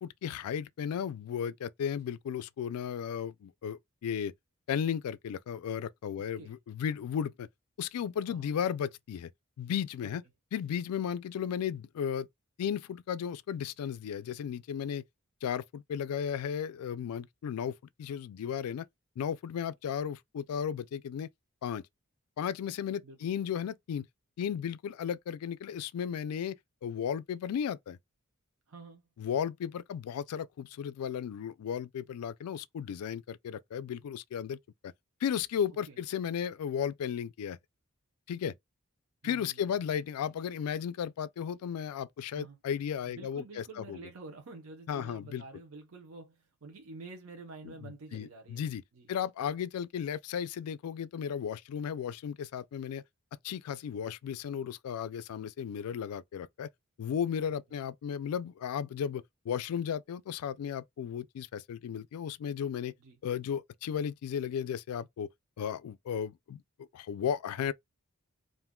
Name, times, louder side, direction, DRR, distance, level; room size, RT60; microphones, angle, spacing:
voice 1, 0.0-4.3 4.7-7.5 7.8-9.3 9.6-10.2 10.5-12.3 12.6-15.0 15.4-18.9 19.2-21.3 21.6-21.8 22.4-24.1 24.4-26.6 26.8-28.0 29.2-34.9 35.2-37.6 38.3-38.6 39.2-44.0 44.9-45.4 47.6-48.8 49.1-53.0 53.4-56.7 57.0-62.9 63.2-65.3 65.6-66.6 66.9-67.7, left 8 dB, 85° left, 0.3 m, -35 dB
voice 2, 6.2-6.6 8.3-8.5 10.0-10.1 23.0-23.2 28.7-29.1 35.9-36.0 39.2-39.9 42.3-42.6 43.1-48.7 48.9-49.1 63.0-63.2, right 3 dB, 70° right, 0.7 m, -49 dB
2.5 x 2.2 x 3.5 m
head